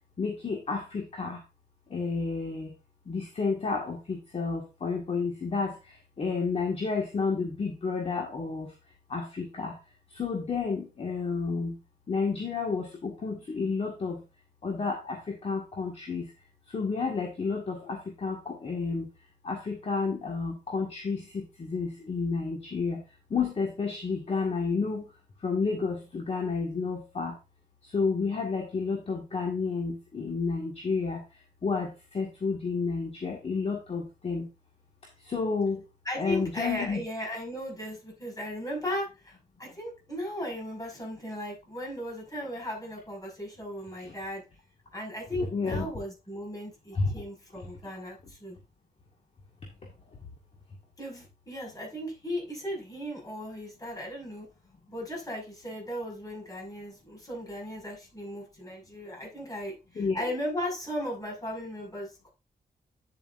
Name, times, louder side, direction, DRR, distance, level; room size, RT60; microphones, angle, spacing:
voice 1, 0.2-1.4 1.9-2.7 3.1-8.7 9.1-9.7 10.1-11.8 12.1-14.2 14.6-16.3 16.7-19.1 19.4-23.0 23.3-25.0 25.4-27.4 27.8-31.2 31.6-34.5 35.2-35.8 36.2-37.0 44.0-44.1 45.5-45.9 46.9-47.1 60.0-60.3, left 4 dB, 40° left, 0 dB, 1.9 m, -31 dB
voice 2, 36.0-44.4 44.9-48.6 51.0-54.5 54.9-62.3, equal, 20° left, -1 dB, 5.9 m, -36 dB
9.9 x 7.6 x 2.6 m, 0.27 s
wide cardioid pair, 130°, 16 cm